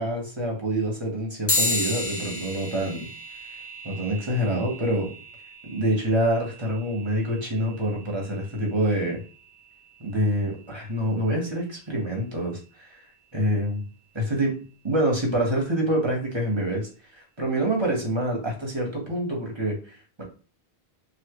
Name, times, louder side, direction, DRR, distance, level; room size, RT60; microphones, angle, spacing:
voice 1, 0.0-3.1 3.8-5.1 5.7-9.2 10.0-12.9 13.3-13.8 14.1-14.5 14.8-20.2, right 1 dB, 25° right, -1 dB, 1.1 m, -26 dB
sound 1, 1.5-11.3, left 1 dB, 20° left, 0.4 m, -34 dB
3.2 x 2.8 x 3.0 m, 0.37 s
omnidirectional pair, 1.0 m